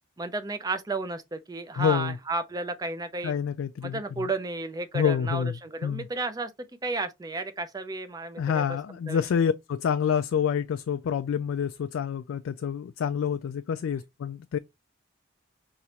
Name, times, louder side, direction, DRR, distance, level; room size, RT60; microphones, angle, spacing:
voice 1, 0.2-3.3 3.8-6.5 6.8-8.8 9.1-9.2, right 3 dB, 20° right, 0.4 m, -33 dB
voice 2, 1.7-2.2 3.2-4.3 4.9-6.1 8.4-14.6, left 7 dB, 90° left, 0.3 m, -27 dB
4.8 x 2.9 x 2.8 m
head